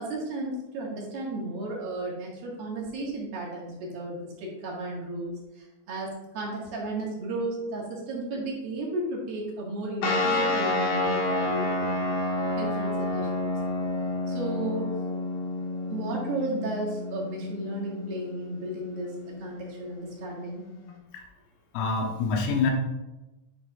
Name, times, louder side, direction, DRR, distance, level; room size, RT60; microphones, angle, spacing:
voice 1, 0.0-12.0 12.6-13.6 14.3-14.9 15.9-20.7, right 2 dB, 60° right, -4 dB, 2.9 m, -34 dB
sound 1, 10.0-20.9, left 2 dB, 65° left, 3.0 m, -30 dB
voice 2, 21.7-22.7, left 4 dB, 85° left, 1 dB, 3.9 m, -26 dB
11.0 x 6.1 x 2.5 m, 1.0 s
omnidirectional pair, 6.0 m